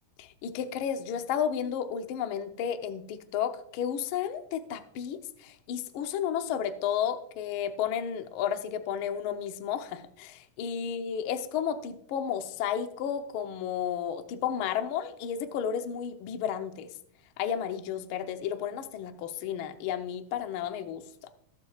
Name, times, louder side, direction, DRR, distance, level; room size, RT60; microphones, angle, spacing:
voice 1, 0.2-16.9 17.4-21.0, left 8 dB, 85° left, 7 dB, 1.1 m, -32 dB
20.0 x 7.5 x 2.4 m, 0.71 s
omnidirectional pair, 3.5 m